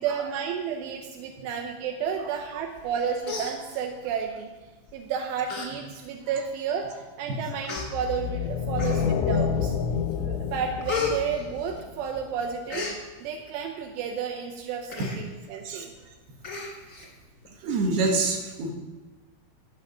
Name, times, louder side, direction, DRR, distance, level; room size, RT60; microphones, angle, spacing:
voice 1, 0.0-4.5 4.9-9.7 10.2-12.9 13.2-15.9 17.0-17.1, right 7 dB, 80° right, 3 dB, 2.6 m, -32 dB
Human voice, 2.8-2.9 3.2-4.1 4.9-5.0 5.4-5.7 6.1-6.2 7.0-7.1 7.6-7.9 8.7-9.3 9.8-10.1 10.4-12.1 12.4-13.0 14.9-15.2 15.6-15.7 15.9-16.1 16.4-17.1 17.4-17.5, left 4 dB, 45° left, 1.2 m, -34 dB
sound 1, 7.8-12.2, left 7 dB, 85° left, 2.7 m, -28 dB
voice 2, 17.6-18.7, right 3 dB, 60° right, 2 dB, 3.2 m, -26 dB
12.5 x 6.2 x 8.9 m, 1.2 s
omnidirectional pair, 5.9 m